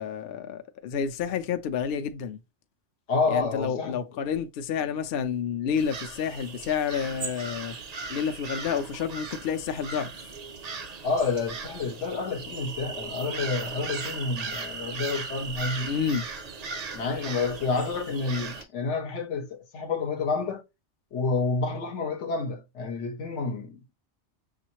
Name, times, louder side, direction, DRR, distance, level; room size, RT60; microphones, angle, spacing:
voice 1, 0.0-2.4 3.3-7.8 8.1-10.1 15.8-16.2, left 7 dB, 60° left, 0.7 m, -29 dB
voice 2, 3.1-4.0 11.0-15.9 16.9-20.6 21.1-23.9, left 4 dB, 80° left, 1.1 m, -29 dB
sound 1, 5.8-18.6, right 4 dB, 50° right, 0.5 m, -37 dB
6.1 x 2.5 x 2.9 m
omnidirectional pair, 1.2 m